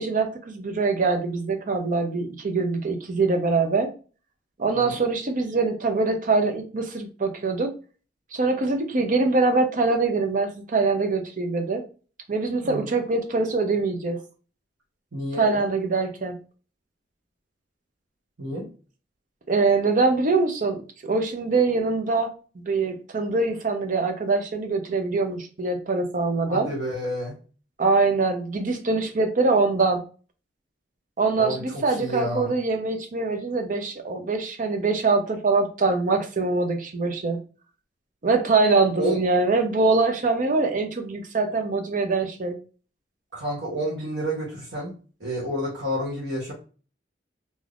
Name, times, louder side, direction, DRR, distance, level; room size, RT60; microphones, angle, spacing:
voice 1, 0.0-3.9 4.6-7.7 8.3-11.8 12.3-14.2 15.4-16.3 19.5-22.3 22.7-26.7 27.8-30.0 31.2-37.4 38.2-42.6, right 3 dB, 45° right, 6 dB, 0.6 m, -23 dB
voice 2, 12.6-13.0 15.1-15.5 18.4-18.7 26.5-27.4 31.4-32.5 38.9-39.2 43.3-44.9 45.2-46.5, equal, 80° right, -4 dB, 1.1 m, -29 dB
3.4 x 2.6 x 2.4 m, 0.37 s
head